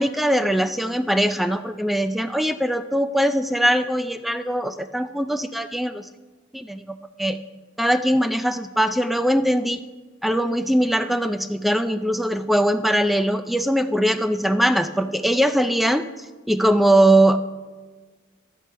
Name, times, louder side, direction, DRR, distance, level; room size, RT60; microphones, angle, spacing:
voice 1, 0.0-6.0 6.5-7.4 7.8-9.8 10.2-16.1 16.5-17.4, right 1 dB, ahead, 10 dB, 0.3 m, -21 dB
12.0 x 9.1 x 5.6 m, 1.4 s
head